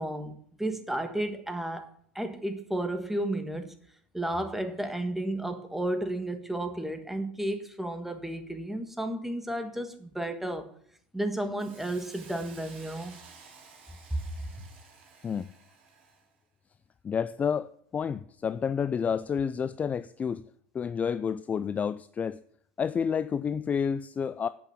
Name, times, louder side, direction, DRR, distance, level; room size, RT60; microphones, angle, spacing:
voice 1, 0.0-1.9 2.1-3.8 4.1-10.7 11.1-13.1 14.1-14.2, right 1 dB, 5° right, 1.4 m, -32 dB
Hiss, 11.6-16.3, right 5 dB, 80° right, 3.2 m, -53 dB
voice 2, 17.0-20.4 20.7-22.4 22.8-24.5, left 7 dB, 25° left, 0.4 m, -30 dB
8.3 x 6.1 x 7.0 m
supercardioid pair, 110°, 7 cm